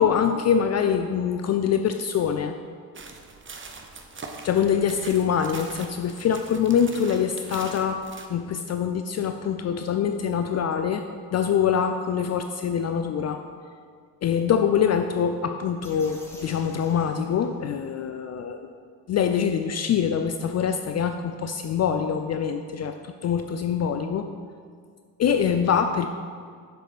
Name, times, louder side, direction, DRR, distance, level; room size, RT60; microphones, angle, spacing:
voice 1, 0.0-2.6 4.4-8.0 8.3-11.0 11.3-13.4 14.2-18.7 19.1-24.3 25.2-26.1, left 7 dB, 35° left, 7 dB, 0.4 m, -24 dB
sound 1, 3.0-8.3, right 4 dB, 25° right, 1.0 m, -42 dB
sound 2, 15.8-17.9, left 1 dB, 5° left, 1.9 m, -49 dB
6.8 x 6.5 x 5.0 m, 2.1 s
hypercardioid pair, 55°, 47 cm